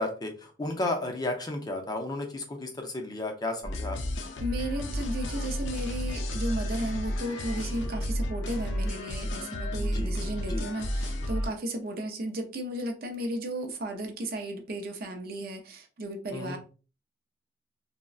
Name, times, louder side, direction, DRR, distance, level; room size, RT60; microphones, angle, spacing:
voice 1, 0.0-4.0 9.8-10.1 10.5-10.7 16.3-16.6, left 2 dB, 20° left, 0.4 m, -33 dB
sound 1, 3.6-11.5, equal, 75° left, 0.5 m, -32 dB
voice 2, 4.4-16.6, right 1 dB, 50° right, 0.5 m, -34 dB
3.6 x 2.1 x 2.3 m
head